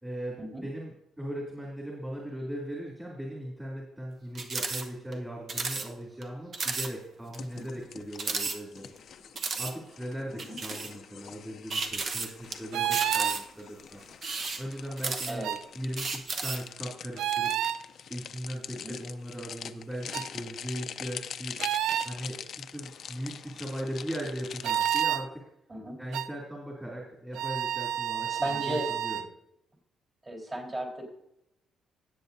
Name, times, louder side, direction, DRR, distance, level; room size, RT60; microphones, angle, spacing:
voice 1, 0.0-8.9 9.6-14.0 14.6-15.4 15.7-25.4 26.0-29.2, equal, 10° right, -4 dB, 2.5 m, -39 dB
sound 1, 4.3-4.8 5.1-5.2 5.5-5.9 6.2-6.3 6.5-6.9 7.3-7.4 8.1-9.0 9.4-9.7 10.4-10.9 11.7-12.5 12.9-13.6 14.1-15.5 16.0-16.7, right 4 dB, 45° right, 1.0 m, -33 dB
sound 2, 7.3-25.0, left 8 dB, 55° left, 0.5 m, -44 dB
sound 3, 12.7-13.4 15.4-15.6 17.2-17.8 20.1-20.3 21.6-22.1 24.6-25.3 26.1-26.3 27.3-29.3, right 10 dB, 80° right, 0.4 m, -29 dB
voice 2, 25.7-26.0 28.3-28.9 30.2-31.1, right 1 dB, 25° right, -2 dB, 3.7 m, -35 dB
17.5 x 7.7 x 2.7 m, 0.80 s
cardioid pair, 120°, 0 cm